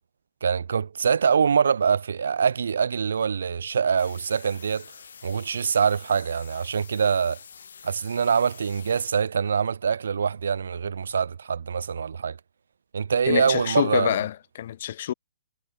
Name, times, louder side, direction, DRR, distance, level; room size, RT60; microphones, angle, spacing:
voice 1, 0.4-4.9 5.2-7.4 7.8-12.4 12.9-14.2, right 6 dB, 75° right, 0.6 m, -24 dB
sound 1, 4.0-9.1, left 6 dB, 75° left, 5.6 m, -47 dB
voice 2, 13.3-15.1, left 11 dB, 45° left, 0.6 m, -26 dB
hypercardioid pair, 165°, 0 cm